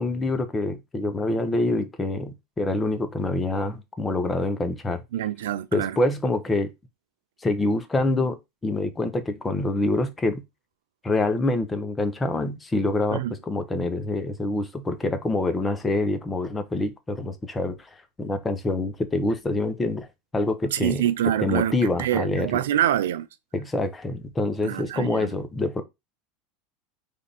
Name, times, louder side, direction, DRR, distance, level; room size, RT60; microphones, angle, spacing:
voice 1, 0.0-5.0 5.7-6.7 7.4-8.4 8.6-10.4 11.0-17.8 18.2-20.1 20.3-21.0 21.4-22.6 23.5-25.8, left 2 dB, 15° left, 0.7 m, -26 dB
voice 2, 5.1-6.0 13.1-13.3 20.7-23.3 24.6-25.3, right 11 dB, 85° right, 0.4 m, -25 dB
3.4 x 2.5 x 4.0 m
hypercardioid pair, 105°, 0 cm